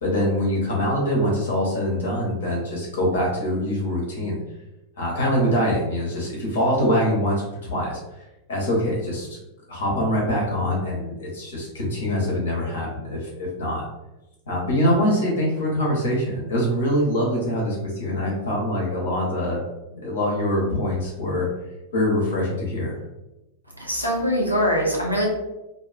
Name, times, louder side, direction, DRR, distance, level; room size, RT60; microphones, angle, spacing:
voice 1, 0.0-4.4 5.0-8.0 8.5-9.4 9.7-13.3 13.6-13.8 14.5-19.6 19.9-21.5 21.9-23.0, equal, 60° left, -3 dB, 0.8 m, -24 dB
voice 2, 23.8-25.3, equal, 90° right, -3 dB, 0.5 m, -22 dB
2.5 x 2.3 x 2.3 m, 0.97 s
figure-of-eight pair, 90°, 0 cm